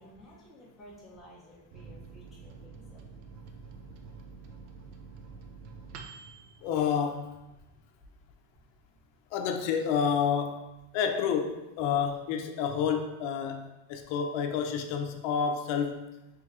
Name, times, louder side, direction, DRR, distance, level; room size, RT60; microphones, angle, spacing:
voice 1, 0.0-3.0 3.8-4.0, equal, ahead, -7 dB, 0.4 m, -53 dB
Microwave oven, 1.7-7.8 8.2-8.3 8.5-9.2, right 5 dB, 90° right, 0.6 m, -48 dB
voice 2, 6.6-7.3 9.3-10.6 10.9-16.0, left 7 dB, 65° left, 5 dB, 0.5 m, -29 dB
4.7 x 3.2 x 2.4 m, 0.98 s
cardioid pair, 165°, 46 cm